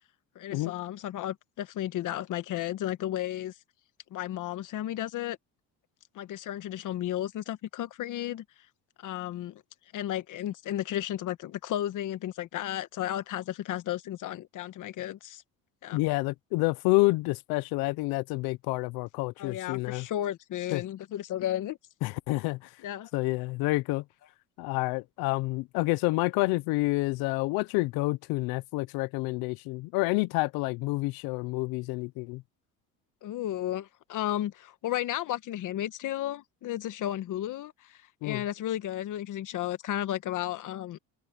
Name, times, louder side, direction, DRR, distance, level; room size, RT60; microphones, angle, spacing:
voice 1, 0.3-3.5 4.1-5.4 6.1-8.4 9.0-9.6 9.9-15.4 15.8-16.0 19.4-21.8 22.8-23.1 33.2-41.0, left 12 dB, 60° left, 1.3 m, -33 dB
voice 2, 15.9-20.1 20.7-20.8 22.0-22.7 23.1-24.0 24.6-32.4 38.2-38.4, left 22 dB, 85° left, 0.7 m, -28 dB
cardioid pair, 110°, 35 cm